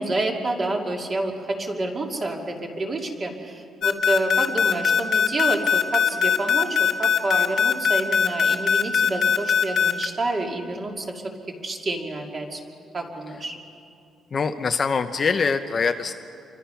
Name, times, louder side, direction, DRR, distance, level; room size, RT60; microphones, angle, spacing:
voice 1, 0.0-11.2 11.6-12.6 12.9-13.6, right 2 dB, 25° right, 1 dB, 2.4 m, -28 dB
sound 1, 3.8-10.1, left 7 dB, 50° left, 1.5 m, -20 dB
voice 2, 14.3-16.1, left 5 dB, 30° left, 7 dB, 0.7 m, -23 dB
29.0 x 24.0 x 5.8 m, 2.6 s
cardioid pair, 175°, 0 cm